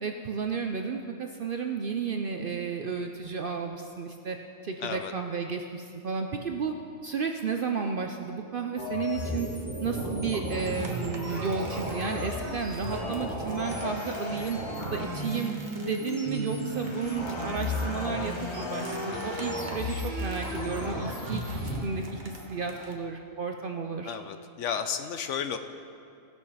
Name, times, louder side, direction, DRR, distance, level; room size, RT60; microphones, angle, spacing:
voice 1, 0.0-4.4 4.6-6.7 7.0-9.5 9.8-14.6 14.9-15.5 15.8-21.4 21.8-24.1, right 5 dB, 60° right, 4 dB, 0.6 m, -32 dB
voice 2, 4.8-5.1 12.3-12.6 24.0-25.6, left 7 dB, 70° left, 8 dB, 0.9 m, -33 dB
sound 1, 8.8-21.8, left 1 dB, 20° right, 2.1 m, -34 dB
sound 2, 10.5-22.9, right 3 dB, 40° right, 1.1 m, -47 dB
sound 3, 13.6-22.4, left 3 dB, 30° left, 0.5 m, -44 dB
17.0 x 6.4 x 5.6 m, 2.6 s
omnidirectional pair, 1.4 m